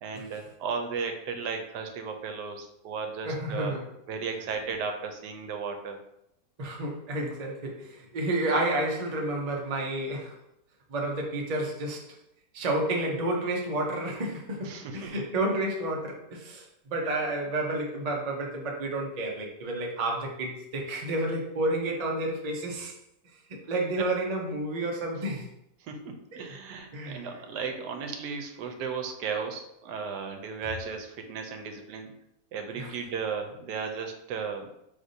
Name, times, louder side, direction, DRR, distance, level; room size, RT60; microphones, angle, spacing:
voice 1, 0.0-3.8 4.1-6.0 14.6-15.1 24.0-24.1 25.8-32.1 32.5-34.7, right 5 dB, 85° right, 5 dB, 1.2 m, -35 dB
voice 2, 3.2-3.8 6.6-10.3 10.9-12.0 12.5-22.9 23.5-25.5 26.3-26.4 26.9-27.3 32.8-32.9, right 1 dB, 40° right, 0 dB, 0.5 m, -30 dB
5.0 x 3.4 x 2.7 m, 0.81 s
omnidirectional pair, 1.8 m